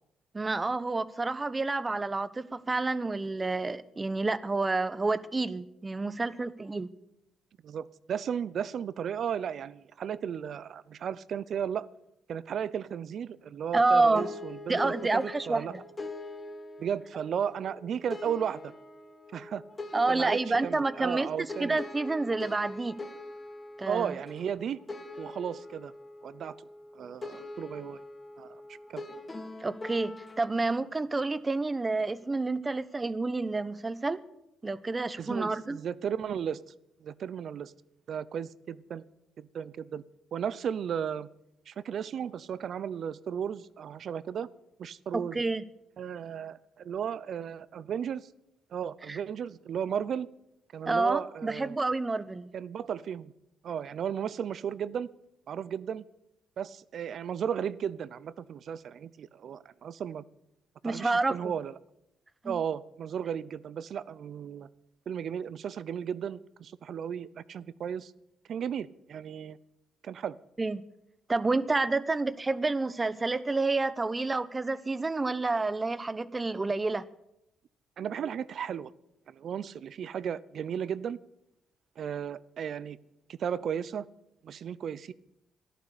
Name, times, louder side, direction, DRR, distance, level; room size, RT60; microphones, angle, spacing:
voice 1, 0.3-6.9 13.7-14.3 14.7-15.8 19.9-23.0 23.8-24.1 29.6-34.2 34.6-35.8 45.1-45.6 49.1-49.2 50.9-52.5 60.8-61.4 62.4-62.6 70.6-70.8 71.3-77.0, right 3 dB, 25° right, 15 dB, 0.9 m, -29 dB
voice 2, 7.6-11.9 12.3-15.7 16.8-18.7 19.3-19.6 20.1-21.8 23.8-24.8 25.2-25.9 26.2-26.6 26.9-28.0 28.4-29.0 35.1-36.6 37.0-37.7 38.1-39.0 39.4-40.0 40.3-41.3 41.7-44.5 44.8-45.4 46.0-48.3 48.7-50.3 50.7-51.8 52.5-53.3 53.6-55.1 55.5-56.0 56.6-60.2 60.8-61.7 62.4-64.7 65.1-68.1 68.5-69.6 70.0-70.4 78.0-78.9 79.3-81.2 82.0-83.0 83.3-84.1 84.4-85.1, right 8 dB, 60° right, 19 dB, 0.7 m, -35 dB
sound 1, 14.1-30.6, left 2 dB, 25° left, 2.3 m, -43 dB
13.5 x 11.5 x 8.4 m, 0.83 s
cardioid pair, 90°, 0 cm